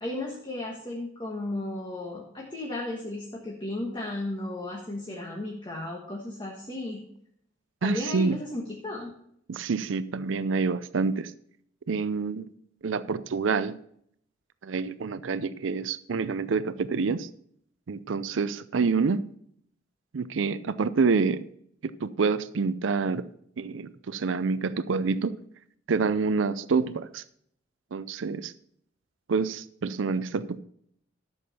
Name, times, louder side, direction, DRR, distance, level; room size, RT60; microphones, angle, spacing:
voice 1, 0.0-7.0 7.8-9.1, left 2 dB, 25° left, -1 dB, 1.3 m, -34 dB
voice 2, 7.8-8.4 9.5-11.3 11.9-12.5 12.8-13.8 14.6-17.3 17.9-19.3 20.1-21.4 21.8-23.2 23.6-25.4 25.9-27.2 27.9-28.5 29.3-30.6, right 4 dB, 80° right, 15 dB, 0.5 m, -27 dB
12.0 x 7.1 x 4.2 m, 0.68 s
head